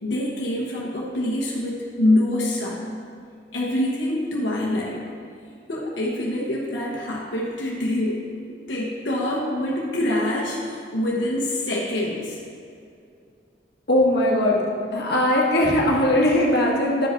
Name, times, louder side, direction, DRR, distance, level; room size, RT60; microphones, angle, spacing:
voice 1, 0.0-2.9 3.5-5.0 5.7-8.2 8.7-12.4, left 1 dB, 85° left, -4 dB, 1.1 m, -25 dB
voice 2, 13.9-14.6 14.9-17.1, left 1 dB, 60° left, -3 dB, 1.4 m, -19 dB
11.0 x 5.0 x 4.4 m, 2.4 s
head